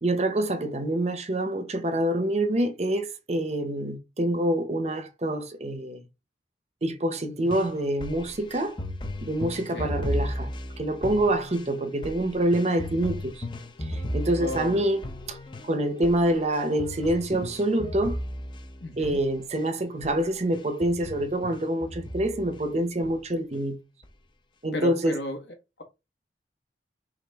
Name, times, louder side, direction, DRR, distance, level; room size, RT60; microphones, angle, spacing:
voice 1, 0.0-6.0 6.8-8.8 9.2-10.5 10.8-13.4 13.8-15.4 15.6-18.2 19.0-23.8 24.6-25.2, right 1 dB, 35° right, 0.7 m, -26 dB
sound 1, 7.4-19.7 20.0-20.2 20.5-22.6 23.0-23.6 24.0-24.1, left 1 dB, 25° left, 0.6 m, -36 dB
voice 2, 14.4-14.8 18.8-19.2 24.7-25.4, equal, 75° left, 1.4 m, -33 dB
6.0 x 2.5 x 3.4 m
head